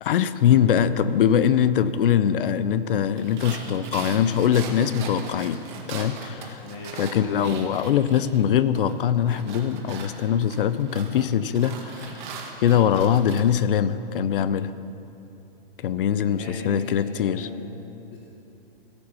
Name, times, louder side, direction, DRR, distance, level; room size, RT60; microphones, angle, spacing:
voice 1, 0.0-5.6 5.9-6.6 7.0-12.2 12.6-14.7 15.8-17.5, left 9 dB, 65° left, 15 dB, 0.6 m, -22 dB
sound 1, 3.2-8.5 8.7-13.4, right 5 dB, 50° right, 1.8 m, -39 dB
voice 2, 6.6-7.0 16.3-17.7 18.1-18.2, left 3 dB, 30° left, -3 dB, 1.2 m, -39 dB
17.0 x 6.9 x 5.6 m, 3.0 s
hypercardioid pair, 155°, 29 cm